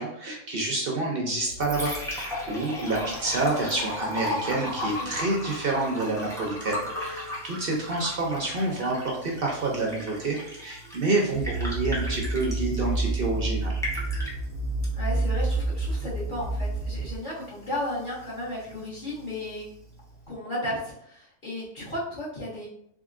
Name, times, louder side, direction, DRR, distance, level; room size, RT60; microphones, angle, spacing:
voice 1, 0.0-13.8, right 2 dB, 55° right, -1 dB, 0.6 m, -28 dB
Liquid, 1.3-20.3, left 1 dB, 5° left, 0.4 m, -37 dB
sound 1, 11.3-17.2, right 2 dB, 80° right, 1.1 m, -29 dB
voice 2, 15.0-19.6 20.3-22.7, left 1 dB, 30° left, -7 dB, 1.4 m, -34 dB
3.7 x 3.6 x 2.5 m, 0.73 s
omnidirectional pair, 1.7 m